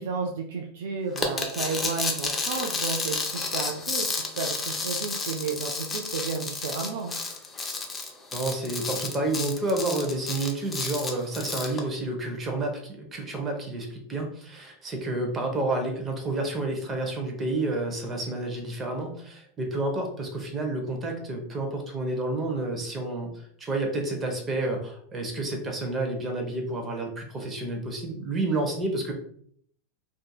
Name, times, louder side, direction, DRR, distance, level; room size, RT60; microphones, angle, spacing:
voice 1, 0.0-7.2, right 5 dB, 75° right, 2 dB, 0.4 m, -32 dB
sound 1, 1.2-11.8, left 3 dB, 20° left, 0.5 m, -31 dB
voice 2, 8.3-29.1, right 2 dB, 20° right, 2 dB, 0.8 m, -30 dB
2.6 x 2.6 x 2.3 m, 0.62 s
hypercardioid pair, 115°, 0 cm